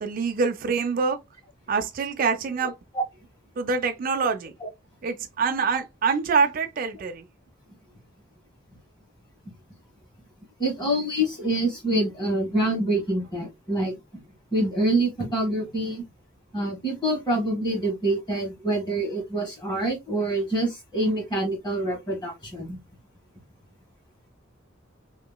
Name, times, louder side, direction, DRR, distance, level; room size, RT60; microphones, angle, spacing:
voice 1, 0.0-1.2 1.7-2.8 3.6-4.5 5.0-7.2, right 5 dB, 45° right, 0.3 m, -25 dB
voice 2, 10.6-13.9 14.5-16.0 16.5-22.8, right 1 dB, 25° left, 1.4 m, -26 dB
3.1 x 2.9 x 2.2 m
head